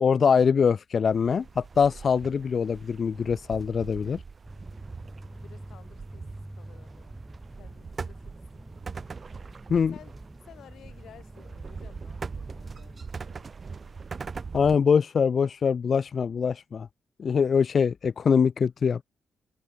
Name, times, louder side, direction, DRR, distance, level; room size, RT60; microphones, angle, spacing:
voice 1, 0.0-4.2 9.7-9.9 14.5-16.9 17.2-19.0, left 6 dB, 45° left, 0.3 m, -23 dB
sound 1, 1.0-14.8, right 5 dB, 35° right, 1.0 m, -42 dB
sound 2, 4.4-13.1, right 1 dB, 10° right, 4.3 m, -46 dB
voice 2, 5.3-7.1 7.6-8.7 9.9-10.1 10.4-14.2, left 10 dB, 85° left, 5.4 m, -55 dB
wide cardioid pair, 145°, 0 cm